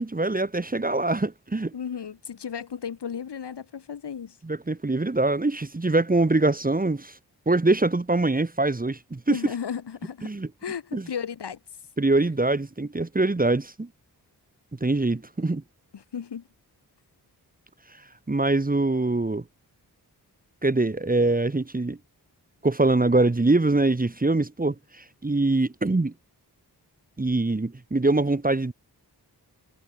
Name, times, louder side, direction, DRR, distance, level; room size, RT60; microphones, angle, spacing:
voice 1, 0.0-1.7 4.4-7.2 7.5-9.4 10.2-10.5 10.9-11.1 12.0-13.9 14.8-15.6 18.3-19.4 20.6-22.0 22.6-26.1 27.2-28.7, right 2 dB, 20° right, 1.3 m, -23 dB
voice 2, 1.7-4.4 9.3-10.3 10.6-11.6 15.9-16.4, left 7 dB, 85° left, 1.8 m, -34 dB
wide cardioid pair, 65°, 40 cm